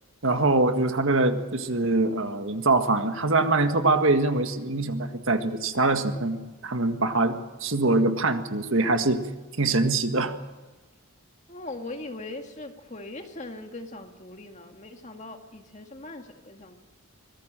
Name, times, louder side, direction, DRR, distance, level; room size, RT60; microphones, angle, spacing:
voice 1, 0.2-9.2 9.6-10.3, right 2 dB, 65° right, 7 dB, 1.8 m, -24 dB
voice 2, 11.5-16.7, left 2 dB, 35° left, 4 dB, 2.1 m, -40 dB
24.5 x 17.5 x 7.6 m, 1.2 s
head